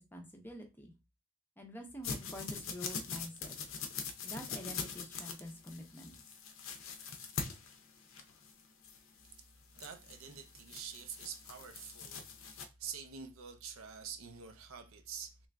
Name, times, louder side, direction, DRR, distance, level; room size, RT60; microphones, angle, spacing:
voice 1, 0.1-0.9 1.6-3.6 4.2-6.1, equal, 10° left, 0.6 m, -47 dB
sound 1, 2.0-12.6, left 5 dB, 70° left, 0.6 m, -43 dB
voice 2, 9.7-15.5, right 7 dB, 80° right, 0.6 m, -47 dB
3.1 x 2.5 x 3.3 m
head